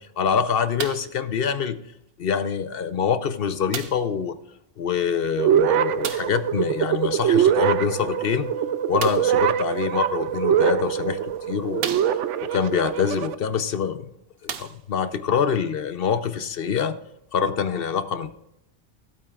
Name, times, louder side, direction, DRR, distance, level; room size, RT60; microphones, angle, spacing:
voice 1, 0.2-1.8 2.2-4.3 4.8-8.5 8.9-12.2 12.5-14.0 14.4-17.0 17.3-18.3, left 7 dB, 60° left, 11 dB, 0.8 m, -25 dB
sound 1, 0.8-1.2 2.1-2.2 3.7-4.1 6.0-6.4 9.0-9.4 10.4-10.5 11.1-11.2 11.8-12.5 13.8-13.9 14.4-15.1 15.9-16.0, right 8 dB, 60° right, 0.9 m, -34 dB
sound 2, 5.4-13.3, right 9 dB, 90° right, 0.9 m, -23 dB
15.5 x 8.6 x 2.4 m, 0.79 s
omnidirectional pair, 1.2 m